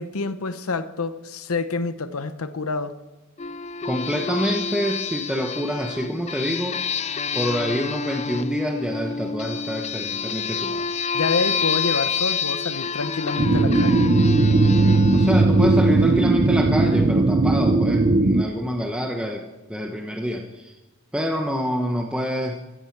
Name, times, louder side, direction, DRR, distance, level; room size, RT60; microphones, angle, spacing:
voice 1, 0.0-3.0 11.1-14.1, left 4 dB, 80° left, 12 dB, 0.9 m, -27 dB
sound 1, 3.4-16.6, left 5 dB, 30° left, 0.4 m, -28 dB
voice 2, 3.8-6.8 7.1-10.9 15.1-20.7 21.1-22.6, equal, 5° right, 1 dB, 1.0 m, -27 dB
sound 2, 13.4-18.4, right 2 dB, 40° right, 0.7 m, -18 dB
15.5 x 15.5 x 4.7 m, 1.1 s
head